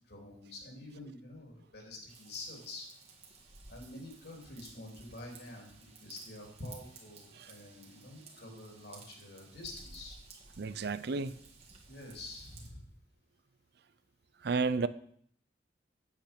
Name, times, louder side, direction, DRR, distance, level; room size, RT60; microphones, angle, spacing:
voice 1, 0.0-2.9 3.7-10.2 11.9-12.8, left 2 dB, 65° left, 1 dB, 2.9 m, -47 dB
Raindrop / Vehicle horn car horn honking / Trickle dribble, 2.1-12.7, right 4 dB, 35° right, 2.0 m, -56 dB
voice 2, 10.6-11.4 14.4-14.9, right 4 dB, 60° right, 15 dB, 0.5 m, -31 dB
8.5 x 8.2 x 5.1 m, 0.62 s
head